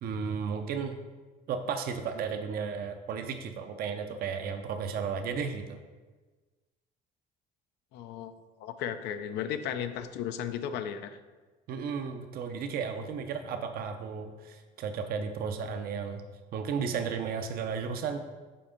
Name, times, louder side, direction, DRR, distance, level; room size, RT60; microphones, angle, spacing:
voice 1, 0.0-1.0 1.5-5.8 11.7-16.2 16.5-18.2, right 6 dB, 65° right, 6 dB, 0.6 m, -34 dB
voice 2, 7.9-8.3 8.6-11.2, left 9 dB, 85° left, 9 dB, 0.5 m, -35 dB
5.7 x 4.3 x 5.1 m, 1.3 s
cardioid pair, 110°, 17 cm